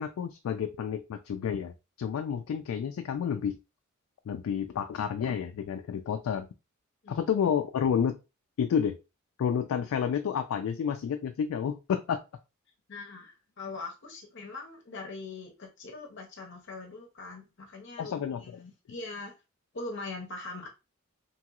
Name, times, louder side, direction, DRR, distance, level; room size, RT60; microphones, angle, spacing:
voice 1, 0.0-3.6 4.3-6.5 7.1-8.2 8.6-9.0 9.4-12.2 18.0-18.4, left 7 dB, 80° left, 0.3 m, -30 dB
voice 2, 12.9-19.3 19.7-20.7, left 3 dB, 55° left, 0.7 m, -42 dB
3.0 x 2.9 x 2.3 m
head